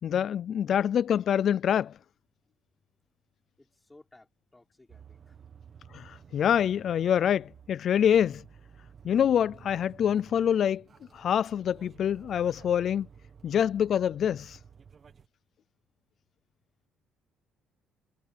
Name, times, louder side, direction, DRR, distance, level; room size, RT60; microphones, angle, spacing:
voice 1, 0.0-1.9 5.9-8.4 9.0-10.8 11.1-13.1 13.4-14.6, left 9 dB, 45° left, 0.4 m, -25 dB
voice 2, 3.6-5.4, left 2 dB, 10° left, 3.9 m, -58 dB
sound 1, 4.9-15.3, right 7 dB, 30° right, 1.5 m, -53 dB
cardioid pair, 155°, 0 cm